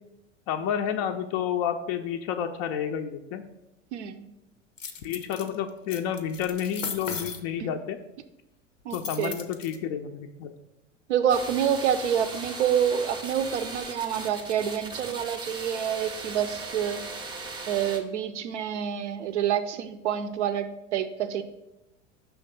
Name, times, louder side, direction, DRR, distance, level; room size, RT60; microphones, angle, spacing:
voice 1, 0.5-3.4 5.0-8.0 8.9-10.5, left 8 dB, 35° left, 5 dB, 0.4 m, -30 dB
voice 2, 3.9-4.3 7.6-7.7 8.9-9.4 11.1-17.0 17.7-21.4, right 9 dB, 65° right, 10 dB, 0.6 m, -27 dB
sound 1, 4.8-5.5 5.9-7.4 8.9-9.8, left 5 dB, 85° left, 0.6 m, -36 dB
sound 2, 11.3-18.0, right 3 dB, 10° right, 0.6 m, -38 dB
5.7 x 3.4 x 5.4 m, 0.93 s
figure-of-eight pair, 80°, 38 cm